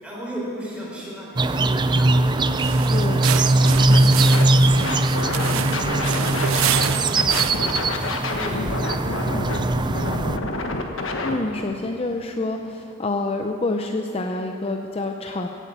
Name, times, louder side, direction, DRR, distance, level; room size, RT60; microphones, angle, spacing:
voice 1, 0.0-2.1 2.4-4.8 5.3-5.9 6.2-10.3, equal, 5° right, -5 dB, 3.9 m, -37 dB
sound 1, 1.4-10.4, right 2 dB, 20° right, 0.4 m, -20 dB
sound 2, 2.6-7.8, right 11 dB, 80° right, 0.5 m, -29 dB
voice 2, 2.9-3.3 11.2-15.5, left 2 dB, 30° left, 3 dB, 0.6 m, -27 dB
Scratching (performance technique), 3.6-4.0 4.3-6.9 7.2-11.4, left 2 dB, 70° left, 1.3 m, -28 dB
15.5 x 8.3 x 8.4 m, 2.9 s
head